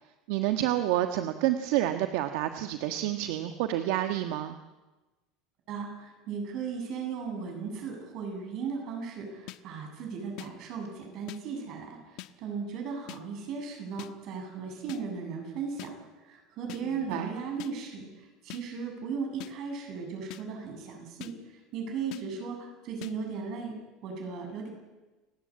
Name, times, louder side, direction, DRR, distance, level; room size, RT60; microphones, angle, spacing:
voice 1, 0.3-4.5 17.1-17.3, right 13 dB, 70° right, 7 dB, 1.4 m, -28 dB
voice 2, 5.7-15.9 16.2-21.3 21.7-23.8 24.0-24.7, right 5 dB, 45° right, 3 dB, 7.9 m, -36 dB
sound 1, 9.5-9.6 10.4-10.5 11.3-11.4 12.2-12.3 13.1-13.2 14.0-14.1 14.9-15.0 15.8-15.9 16.7-16.8 17.6-17.7 18.5-18.6 19.4-19.5 20.3-20.4 21.2-21.3 22.1-22.2 23.0-23.1, left 18 dB, 55° left, 1.3 m, -42 dB
29.0 x 16.5 x 8.8 m, 1.2 s
cardioid pair, 155°, 0 cm